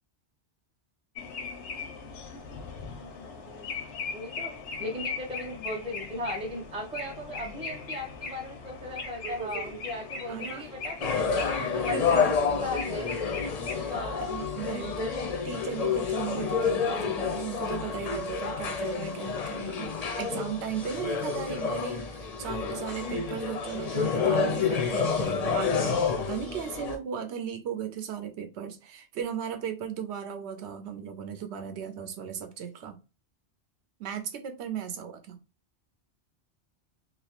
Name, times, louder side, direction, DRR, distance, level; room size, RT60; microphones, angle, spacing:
sound 1, 1.2-13.7, left 4 dB, 90° left, 0.9 m, -39 dB
voice 1, 3.0-3.7 4.1-4.5 4.8-12.0 12.6-13.2 13.9-14.5 23.1-23.2, left 1 dB, 10° right, 1 dB, 0.4 m, -37 dB
voice 2, 9.2-9.8 10.3-10.6 11.9-12.3 13.7-13.9 14.2-15.1 15.4-19.9 20.2-33.0 34.0-35.4, right 8 dB, 80° right, 6 dB, 0.9 m, -36 dB
sound 2, 11.0-27.0, left 5 dB, 50° left, 0.5 m, -29 dB
2.6 x 2.0 x 2.9 m, 0.30 s
omnidirectional pair, 1.1 m